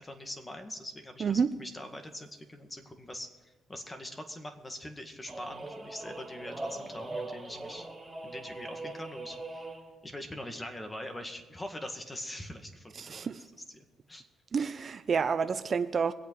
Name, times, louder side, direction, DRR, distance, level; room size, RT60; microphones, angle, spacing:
voice 1, 0.0-7.9 8.2-9.7 10.0-13.3 13.6-14.2, left 1 dB, 20° left, 6 dB, 1.9 m, -43 dB
sound 1, 5.3-9.9, right 2 dB, 15° right, 3.0 m, -41 dB
voice 2, 13.0-13.4 14.5-16.1, right 6 dB, 45° right, 11 dB, 0.6 m, -29 dB
23.0 x 8.4 x 4.7 m, 1.2 s
cardioid pair, 90°, 0 cm